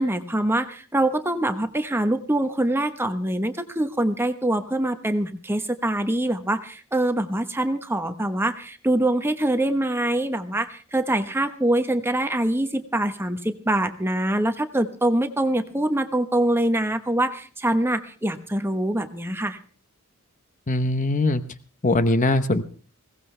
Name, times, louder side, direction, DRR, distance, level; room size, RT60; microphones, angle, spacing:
voice 1, 0.0-19.6, right 1 dB, 10° right, 8 dB, 1.1 m, -24 dB
voice 2, 20.7-21.4 21.8-22.6, left 2 dB, 35° left, 11 dB, 0.9 m, -21 dB
21.0 x 17.5 x 3.3 m, 0.39 s
head